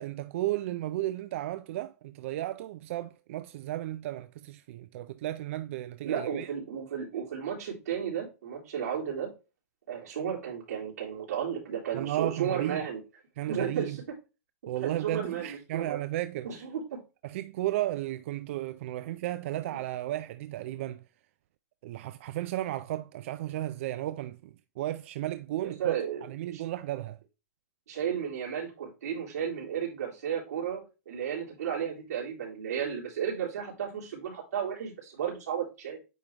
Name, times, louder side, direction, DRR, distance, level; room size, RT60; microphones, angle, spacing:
voice 1, 0.0-6.5 11.9-12.9 13.4-14.0 14.7-16.6 17.2-21.0 21.8-27.2, right 14 dB, 50° right, 0.4 m, -34 dB
voice 2, 6.0-9.3 9.9-13.0 13.5-14.0 14.6-16.0 16.4-17.0 25.8-26.2 26.5-26.6 27.9-36.0, right 8 dB, 85° right, 3.4 m, -33 dB
9.1 x 3.6 x 2.8 m
hypercardioid pair, 155°, 9 cm